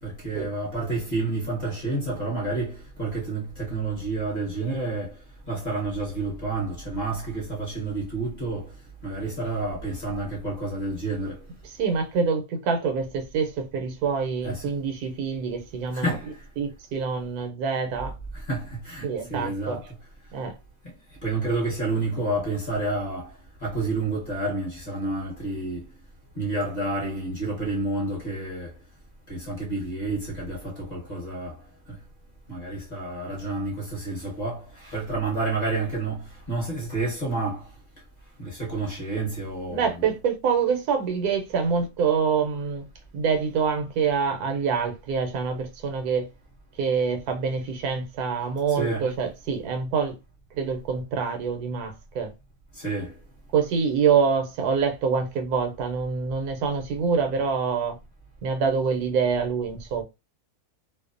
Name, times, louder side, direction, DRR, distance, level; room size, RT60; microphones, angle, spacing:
voice 1, 0.0-5.2 5.5-8.7 9.0-11.4 14.4-14.7 15.9-16.4 18.3-19.9 21.2-23.3 23.6-25.8 26.3-28.7 29.3-31.6 31.9-32.0 32.5-37.7 38.4-40.0 48.7-49.1 52.7-53.1, right 2 dB, 35° left, 0.8 m, -29 dB
voice 2, 11.8-16.1 16.6-18.1 19.0-19.8 20.3-20.5 39.7-42.9 43.1-46.3 46.8-50.2 50.6-52.3 53.5-58.0 58.4-60.0, right 6 dB, 85° right, 1.1 m, -26 dB
2.6 x 2.0 x 2.4 m
omnidirectional pair, 1.6 m